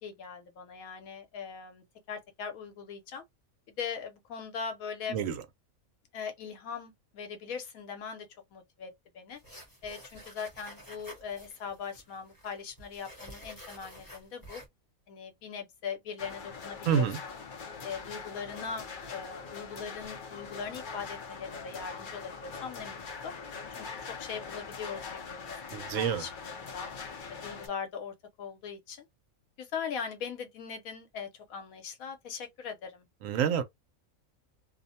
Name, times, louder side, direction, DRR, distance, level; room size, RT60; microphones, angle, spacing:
voice 1, 0.0-3.2 3.7-5.2 6.1-9.4 9.8-14.6 15.1-17.3 17.8-23.3 23.8-26.9 27.3-29.1 29.6-33.1, left 6 dB, 80° left, 1.2 m, -40 dB
voice 2, 5.1-5.4 16.9-17.2 25.7-26.2 33.2-33.6, right 8 dB, 70° right, 0.9 m, -28 dB
sound 1, 9.3-14.7, equal, 20° left, 0.8 m, -50 dB
sound 2, 16.2-27.7, left 5 dB, 55° left, 0.6 m, -42 dB
2.6 x 2.1 x 2.7 m
omnidirectional pair, 1.5 m